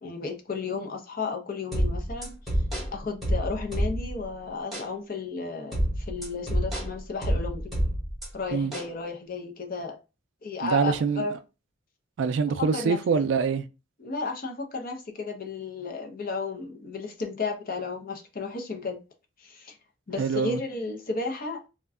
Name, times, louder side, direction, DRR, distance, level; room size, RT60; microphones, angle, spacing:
voice 1, 0.0-2.4 2.9-7.7 8.3-10.0 10.4-11.4 12.6-13.0 14.0-19.0 19.4-19.8 20.1-21.6, left 4 dB, 45° left, 0.5 m, -33 dB
sound 1, 1.7-4.2 4.7-4.9 5.7-8.3 8.7-8.9, equal, ahead, 1.0 m, -28 dB
voice 2, 10.6-11.3 12.2-13.7 20.2-20.6, right 5 dB, 60° right, 0.3 m, -25 dB
2.4 x 2.2 x 3.5 m
head